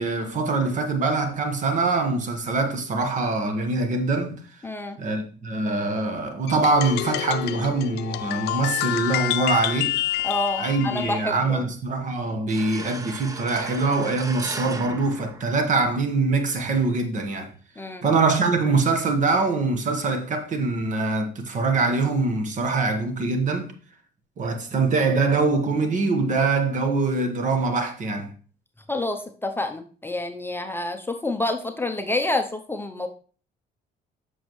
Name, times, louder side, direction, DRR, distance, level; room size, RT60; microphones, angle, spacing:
voice 1, 0.0-4.4 5.0-9.9 10.6-17.5 18.0-23.7 24.4-28.3, right 3 dB, 50° right, 1.4 m, -23 dB
voice 2, 4.6-5.0 10.2-11.6 17.8-18.1 28.9-33.1, left 2 dB, 15° left, 0.6 m, -28 dB
sound 1, 6.5-11.2, left 15 dB, 80° left, 0.4 m, -28 dB
sound 2, 12.5-16.1, right 3 dB, 20° right, 0.7 m, -37 dB
7.4 x 6.1 x 3.1 m
cardioid pair, 110°, 17 cm